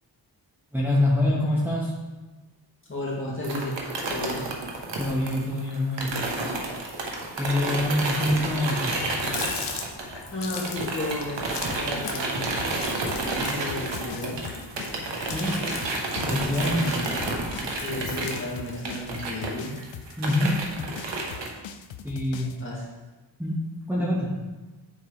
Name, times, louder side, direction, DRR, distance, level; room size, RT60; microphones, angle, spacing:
voice 1, 0.7-1.9 5.0-6.1 6.7-6.8 7.4-9.0 15.2-15.6 16.2-16.9 20.2-20.6 22.0-22.6 23.4-24.3, left 1 dB, 5° right, -6 dB, 1.3 m, -25 dB
voice 2, 2.9-4.4 10.3-12.4 13.1-14.4 16.1-17.3 17.7-19.8 22.6-22.8, left 1 dB, 25° left, -5 dB, 2.2 m, -33 dB
sound 1, 3.4-10.4 10.6-21.5, right 2 dB, 75° right, 1.1 m, -31 dB
Water tap faucet, 8.8-18.9, left 5 dB, 70° left, 1.0 m, -39 dB
sound 2, 11.7-22.6, left 8 dB, 90° left, 0.6 m, -41 dB
9.7 x 4.4 x 3.3 m, 1.2 s
wide cardioid pair, 85°, 44 cm